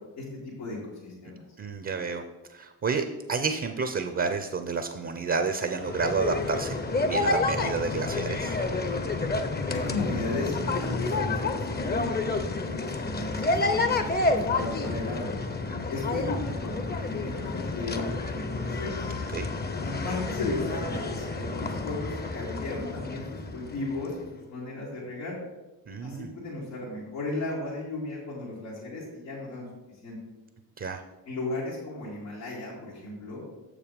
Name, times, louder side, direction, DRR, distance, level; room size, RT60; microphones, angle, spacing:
voice 1, 0.1-1.4 9.7-15.3 15.9-19.1 19.8-25.3 26.0-29.7 30.0-30.2 31.3-33.4, left 2 dB, 90° left, -10 dB, 2.1 m, -35 dB
voice 2, 1.6-2.2 2.5-6.8 7.0-8.6 15.7-15.9 19.3-19.5 25.9-26.3 30.8-31.0, right 4 dB, 30° right, 7 dB, 0.7 m, -30 dB
sound 1, 5.8-24.2, left 3 dB, 20° left, 0.8 m, -29 dB
6.8 x 5.0 x 5.2 m, 1.1 s
hypercardioid pair, 50°, 46 cm